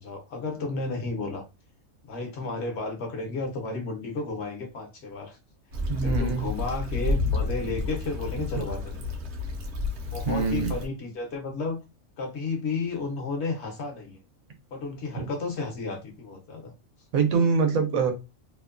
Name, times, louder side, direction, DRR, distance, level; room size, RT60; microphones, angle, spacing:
voice 1, 0.0-1.4 2.0-5.4 6.0-9.1 10.1-11.8 12.2-14.2 14.7-16.7, left 3 dB, 60° left, 1.0 m, -32 dB
Stream / Traffic noise roadway noise / Trickle dribble, 5.7-10.9, left 3 dB, 60° right, 0.9 m, -30 dB
voice 2, 5.9-6.5 10.3-10.8 15.2-15.3 17.1-18.1, right 5 dB, 90° right, 1.1 m, -24 dB
2.8 x 2.1 x 2.4 m
omnidirectional pair, 1.4 m